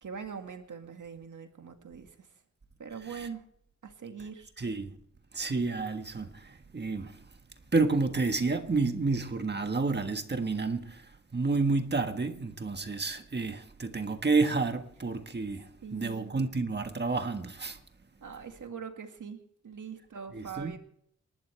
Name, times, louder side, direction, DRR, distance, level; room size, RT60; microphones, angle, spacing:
voice 1, 0.0-2.3 2.8-3.4 3.8-4.5 15.8-16.4 18.2-20.8, right 6 dB, 85° right, 2.0 m, -42 dB
voice 2, 4.6-4.9 5.3-7.2 7.7-17.8 20.3-20.7, right 3 dB, 35° right, 1.5 m, -30 dB
29.0 x 12.5 x 3.4 m
wide cardioid pair, 145°, 30 cm